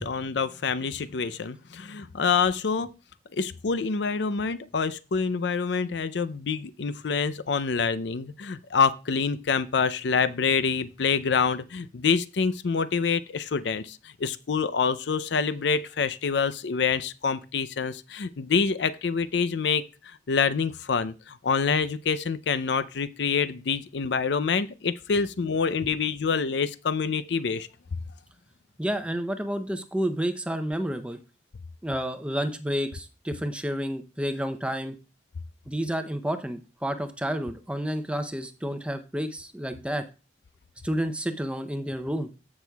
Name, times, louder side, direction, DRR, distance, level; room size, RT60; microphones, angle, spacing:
voice 1, 0.0-2.9 3.3-28.0, left 5 dB, 75° left, 0.5 m, -26 dB
voice 2, 28.8-31.2 31.8-35.0 35.7-40.0 40.8-42.3, equal, 5° right, 0.6 m, -30 dB
15.0 x 6.2 x 2.3 m
head